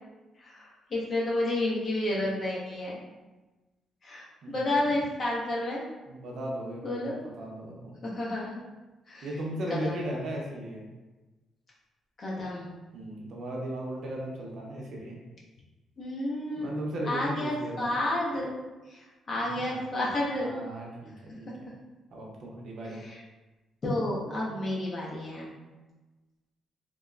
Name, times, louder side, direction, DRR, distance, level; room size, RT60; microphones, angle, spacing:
voice 1, 0.4-3.0 4.0-5.8 6.8-7.1 8.0-8.6 9.1-9.3 9.7-10.0 12.2-12.7 16.0-16.7 17.1-18.6 18.9-20.6 23.0-23.2 23.8-25.5, left 1 dB, 45° left, -5 dB, 0.8 m, -31 dB
voice 2, 4.4-4.8 6.1-8.0 9.2-10.9 12.9-15.2 16.6-17.9 19.3-19.8 20.3-21.7 22.1-23.0 24.5-24.7, right 1 dB, 65° right, -2 dB, 0.6 m, -37 dB
2.8 x 2.0 x 2.3 m, 1.2 s
cardioid pair, 90°, 0 cm